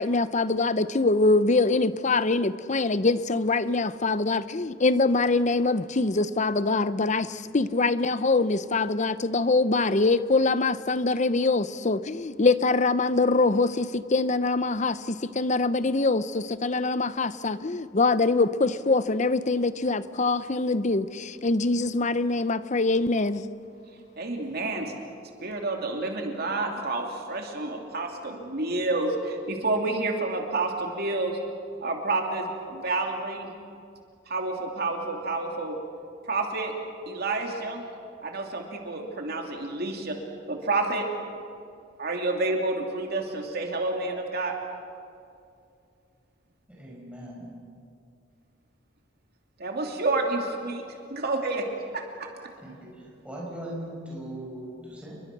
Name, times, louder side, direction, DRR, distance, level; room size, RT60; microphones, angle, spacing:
voice 1, 0.0-23.4, left 3 dB, 40° left, 14 dB, 0.7 m, -24 dB
voice 2, 24.2-24.9 25.4-31.4 31.8-33.5 34.3-35.8 36.3-36.7 37.1-37.8 38.2-40.2 40.5-41.1 42.0-44.5 49.6-50.8 51.1-51.7 51.9-52.5, right 2 dB, 55° right, 2 dB, 2.9 m, -29 dB
voice 3, 46.7-47.5 52.6-52.9 53.2-55.1, right 1 dB, 5° right, -4 dB, 5.7 m, -39 dB
29.0 x 23.0 x 6.1 m, 2.4 s
head